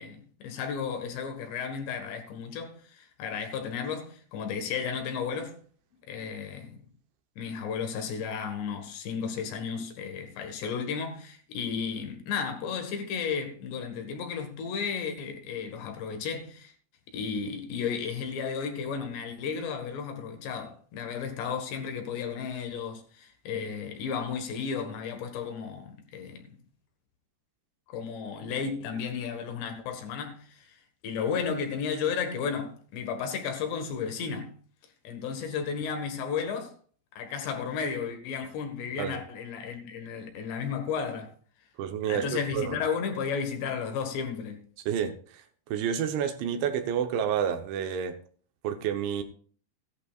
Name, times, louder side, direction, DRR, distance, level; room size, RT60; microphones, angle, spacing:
voice 1, 0.0-5.6 6.1-6.8 7.4-16.7 17.1-26.5 27.9-30.8 31.0-34.6 35.1-36.7 37.2-41.3 42.1-44.6, left 6 dB, 75° left, 3.7 m, -33 dB
voice 2, 41.8-42.8 44.9-45.1 45.7-48.2 48.6-49.2, right 8 dB, 85° right, 3.4 m, -29 dB
16.5 x 11.5 x 2.4 m
omnidirectional pair, 5.1 m